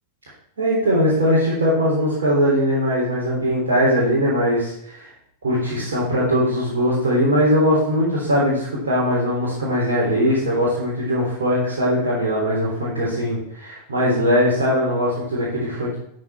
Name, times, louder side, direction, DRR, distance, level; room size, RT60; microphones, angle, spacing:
voice 1, 0.6-5.1 5.4-16.0, equal, 65° right, -7 dB, 3.7 m, -20 dB
13.0 x 6.0 x 5.9 m, 0.73 s
figure-of-eight pair, 90°, 0 cm